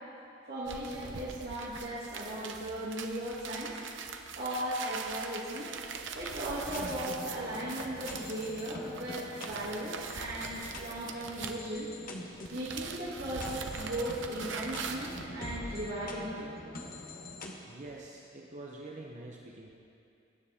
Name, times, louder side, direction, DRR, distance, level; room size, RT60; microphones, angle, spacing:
voice 1, 0.5-3.7 4.3-5.7 6.1-11.9 12.5-16.5, right 1 dB, 60° right, -10 dB, 2.4 m, -37 dB
sound 1, 0.6-12.1 12.4-15.3, right 5 dB, 75° right, 0.8 m, -42 dB
sound 2, 6.7-17.5, left 2 dB, 45° left, 1.2 m, -45 dB
voice 2, 17.7-19.7, right 2 dB, 40° right, -2 dB, 0.9 m, -46 dB
21.0 x 9.4 x 3.6 m, 2.6 s
head